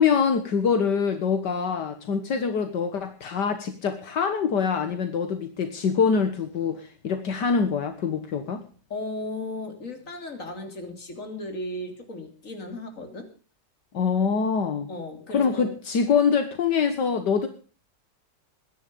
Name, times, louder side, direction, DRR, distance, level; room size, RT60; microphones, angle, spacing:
voice 1, 0.0-8.6 13.9-14.9 15.3-17.5, left 6 dB, 75° left, 7 dB, 2.0 m, -24 dB
voice 2, 8.9-13.3 14.9-15.8, left 2 dB, 45° left, 5 dB, 3.5 m, -35 dB
21.0 x 10.5 x 5.4 m, 0.38 s
omnidirectional pair, 1.9 m